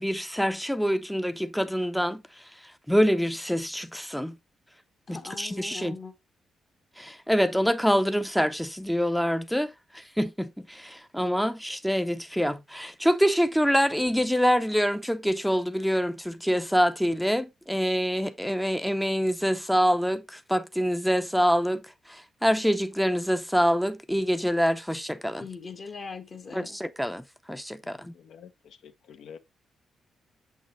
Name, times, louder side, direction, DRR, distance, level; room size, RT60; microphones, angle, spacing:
voice 1, 0.0-2.2 2.9-4.3 5.1-6.0 7.0-21.8 22.1-25.5 26.5-28.0, equal, ahead, 0.5 m, -26 dB
voice 2, 5.1-6.1 25.4-26.8, left 5 dB, 45° left, 1.2 m, -40 dB
voice 3, 27.8-29.4, left 7 dB, 75° left, 0.9 m, -49 dB
6.8 x 6.3 x 3.1 m
cardioid pair, 105°, 0 cm